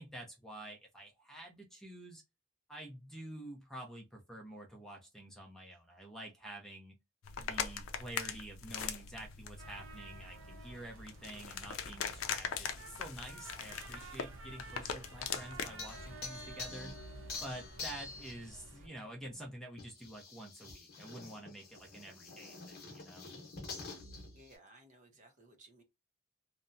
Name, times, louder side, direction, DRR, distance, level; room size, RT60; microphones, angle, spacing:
voice 1, 0.0-2.2 2.7-7.0 7.4-17.0 17.4-23.3, right 1 dB, ahead, 0.6 m, -48 dB
sound 1, 7.2-16.2, left 7 dB, 80° left, 0.4 m, -41 dB
sound 2, 9.6-18.9, right 2 dB, 75° right, 0.7 m, -52 dB
sound 3, 15.8-18.5 19.8-24.5, left 3 dB, 50° left, 0.9 m, -47 dB
voice 2, 24.3-25.8, right 1 dB, 35° right, 0.6 m, -59 dB
2.8 x 2.1 x 2.5 m
head